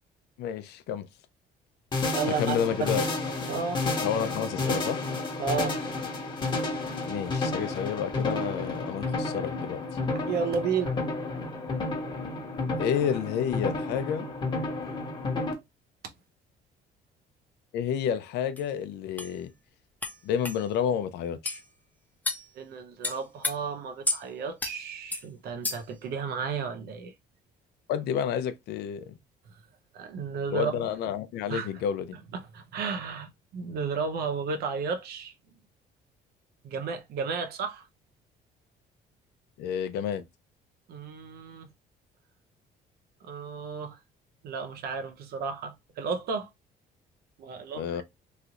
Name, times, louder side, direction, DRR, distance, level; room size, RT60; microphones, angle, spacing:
voice 1, 0.4-1.1 2.4-3.0 4.0-5.0 7.0-9.8 12.8-14.3 17.7-19.5 20.2-21.6 27.9-29.1 30.5-32.1 39.6-40.2 47.7-48.0, left 8 dB, 75° left, 0.5 m, -30 dB
sound 1, 1.9-15.5, left 3 dB, 25° left, 1.0 m, -31 dB
voice 2, 2.1-3.0 3.5-3.9 5.4-5.8 10.3-10.9 22.5-27.1 29.9-30.8 31.5-31.7 32.3-35.3 36.6-37.9 40.9-41.7 43.2-44.0 44.4-46.5 47.4-48.0, right 5 dB, 70° right, 0.7 m, -33 dB
sound 2, 18.6-18.7 19.2-19.3 20.0-20.2 20.4-20.6 21.5-21.6 22.3-22.5 23.0-23.5 24.1-24.2 24.6-24.8 25.1-25.2 25.6-26.0, left 2 dB, 10° left, 0.6 m, -31 dB
3.2 x 2.5 x 2.8 m
cardioid pair, 110°, 17 cm